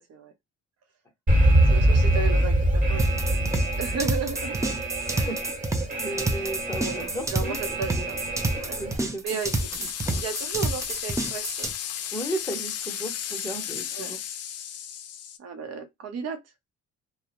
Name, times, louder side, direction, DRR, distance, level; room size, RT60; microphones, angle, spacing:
Alarm, 1.3-9.0, right 1 dB, 25° right, 1.1 m, -24 dB
voice 1, 1.4-5.4 6.8-8.2 8.6-9.8 10.1-11.7 13.9-14.1 15.4-16.4, right 5 dB, 55° right, 0.7 m, -35 dB
sound 1, 3.0-11.7, right 2 dB, 10° right, 0.4 m, -29 dB
voice 2, 6.0-8.2 8.7-9.3 10.0-10.2 12.1-14.2, right 1 dB, 10° left, 0.8 m, -35 dB
sound 2, 9.3-15.4, left 9 dB, 55° left, 0.4 m, -34 dB
2.3 x 2.0 x 2.8 m
cardioid pair, 90°, 30 cm